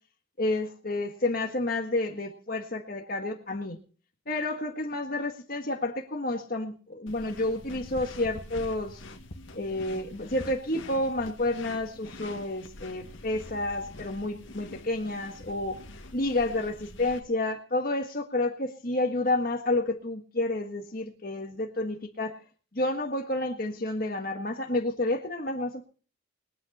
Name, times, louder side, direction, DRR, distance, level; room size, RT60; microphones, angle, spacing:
voice 1, 0.4-3.8 4.3-9.0 9.5-15.8 16.1-22.4 22.7-25.8, left 2 dB, 45° left, 1.6 m, -30 dB
sound 1, 7.1-17.2, left 1 dB, 65° left, 2.1 m, -45 dB
21.5 x 9.5 x 4.3 m
head